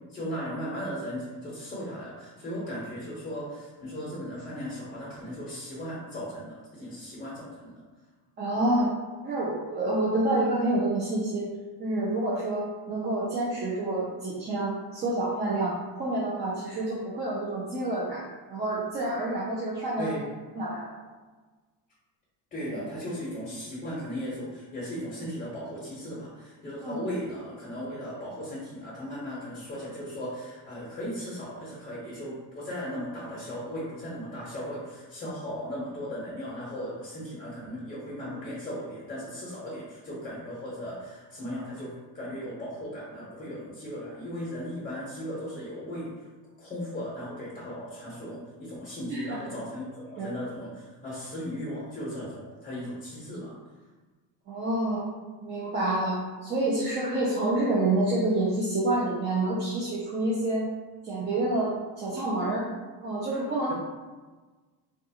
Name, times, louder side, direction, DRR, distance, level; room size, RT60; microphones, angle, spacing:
voice 1, 0.1-7.7 20.0-20.3 22.5-46.1 46.6-53.5, equal, 20° left, -7 dB, 0.8 m, -37 dB
voice 2, 8.4-8.9 9.2-11.5 11.8-18.2 18.5-20.2 20.5-20.9 22.7-22.8 26.8-27.0 49.1-49.4 50.2-50.3 54.5-55.1 55.4-60.7 61.0-62.7 63.0-63.7, right 2 dB, 25° right, -7 dB, 0.4 m, -28 dB
3.6 x 2.3 x 2.7 m, 1.3 s
cardioid pair, 160°, 41 cm